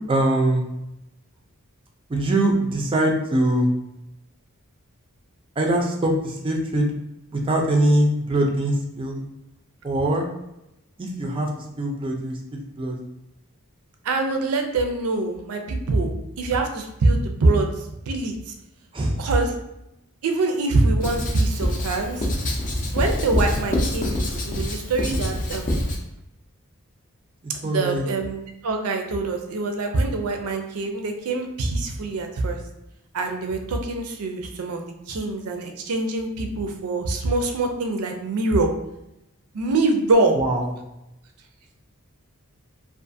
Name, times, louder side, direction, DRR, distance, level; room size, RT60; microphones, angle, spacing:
voice 1, 0.1-0.6 2.1-3.7 5.6-6.9 7.3-9.2 9.8-10.3 11.0-11.5 11.8-13.0 18.9-19.2 27.6-28.0 40.3-40.7, right 1 dB, 25° right, 0 dB, 0.4 m, -22 dB
voice 2, 14.0-17.7 18.1-18.5 19.2-19.5 20.2-22.2 22.9-25.8 27.6-32.6 33.1-38.7 39.5-40.4, right 2 dB, 85° right, 4 dB, 0.4 m, -24 dB
Writing, 21.0-26.0, left 1 dB, 35° left, 0.5 m, -25 dB
2.4 x 2.4 x 2.5 m, 0.88 s
head